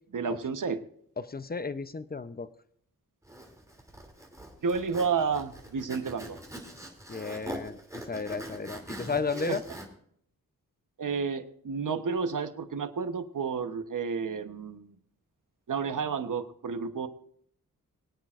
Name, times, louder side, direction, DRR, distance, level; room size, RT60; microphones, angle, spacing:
voice 1, 0.1-0.8 4.6-6.4 9.5-9.6 11.0-14.9 15.7-17.1, right 5 dB, 65° right, 9 dB, 1.1 m, -31 dB
voice 2, 1.2-2.5 7.1-9.6, left 4 dB, 25° left, 13 dB, 0.7 m, -33 dB
Zipper (clothing), 3.2-9.9, right 1 dB, 10° right, 2.8 m, -43 dB
23.5 x 8.8 x 2.5 m, 0.66 s
cardioid pair, 65°, 34 cm